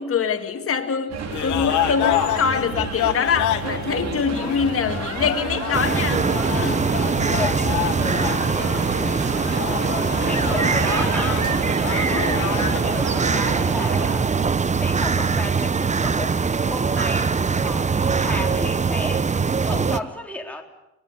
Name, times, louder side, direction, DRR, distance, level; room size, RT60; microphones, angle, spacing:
voice 1, 0.0-6.8 12.0-12.4, left 6 dB, 45° left, 2.3 m, -25 dB
sound 1, 1.1-14.2, right 4 dB, 60° right, 4.5 m, -30 dB
sound 2, 1.3-12.8, left 14 dB, 75° left, 1.3 m, -29 dB
sound 3, 5.7-20.0, right 5 dB, 25° right, 0.8 m, -22 dB
voice 2, 6.5-8.8 9.7-11.6 12.1-14.3 14.8-19.3 19.6-20.6, left 1 dB, 5° left, 4.1 m, -34 dB
24.0 x 20.0 x 8.2 m
supercardioid pair, 70°, 30 cm